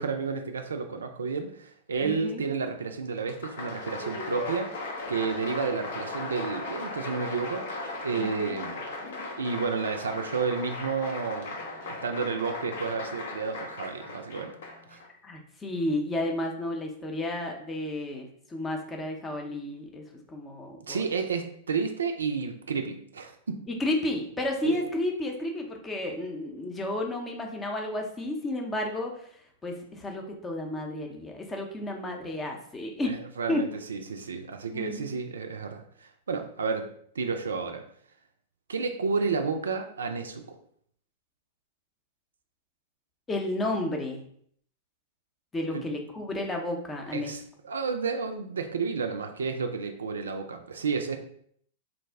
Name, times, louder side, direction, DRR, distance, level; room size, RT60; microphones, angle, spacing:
voice 1, 0.0-7.7 8.0-8.8 9.4-11.6 12.0-14.6 14.9-15.0 20.9-23.6 24.6-24.8 33.1-36.9 37.2-37.8 38.7-40.6 45.7-45.8 47.1-51.2, right 5 dB, 75° right, 5 dB, 0.3 m, -31 dB
voice 2, 2.0-2.4 8.2-8.6 15.2-20.0 20.3-21.0 23.7-29.3 29.6-33.1 33.5-33.6 34.7-35.2 43.3-44.2 45.5-47.3, left 1 dB, 15° left, 2 dB, 0.6 m, -32 dB
Applause, 3.2-15.1, left 3 dB, 65° left, 0.6 m, -37 dB
2.5 x 2.0 x 3.4 m, 0.64 s
figure-of-eight pair, 100°, 0 cm